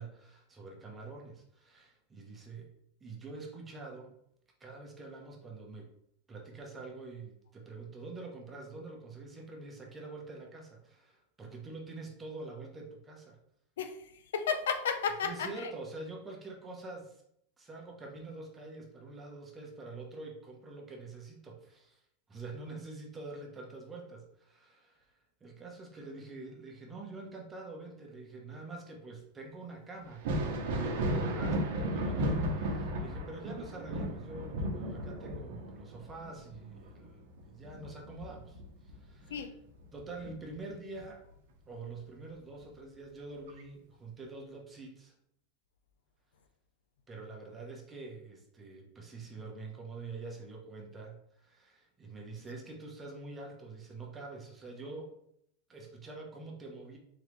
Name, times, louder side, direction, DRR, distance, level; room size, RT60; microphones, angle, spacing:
voice 1, 0.0-2.7 3.0-4.2 4.6-5.9 6.3-13.4 15.2-17.2 17.6-22.0 22.3-25.1 25.4-30.3 31.1-39.5 39.9-41.3 41.7-45.1 47.1-55.1 55.7-57.0, right 3 dB, 15° right, 0 dB, 0.9 m, -46 dB
voice 2, 13.8-15.7 39.3-39.5, left 6 dB, 85° left, 7 dB, 0.5 m, -33 dB
Thunder, 30.1-39.4 39.8-41.0 42.6-42.7 43.5-43.6, right 1 dB, 65° right, 0.8 m, -35 dB
3.8 x 3.2 x 3.1 m, 0.73 s
supercardioid pair, 135°, 0 cm